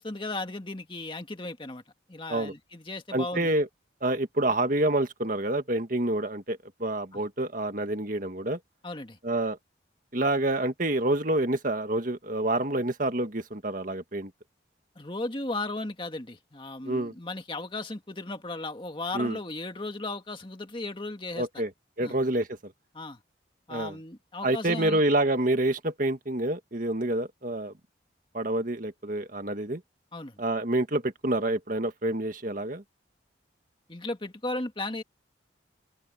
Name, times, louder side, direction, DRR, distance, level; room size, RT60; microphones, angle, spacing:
voice 1, 0.0-1.8 2.1-3.5 7.1-7.2 8.8-9.2 15.0-21.5 22.0-22.2 22.9-23.2 23.7-25.0 30.1-30.4 33.9-35.0, left 2 dB, 25° left, 1.9 m, -36 dB
voice 2, 3.1-3.7 4.0-8.6 9.2-9.6 10.1-14.3 16.8-17.1 19.1-19.4 21.4-21.7 22.0-22.7 23.7-24.0 24.4-27.7 28.3-29.8 30.4-32.8, right 1 dB, 45° right, 1.9 m, -27 dB
open air
head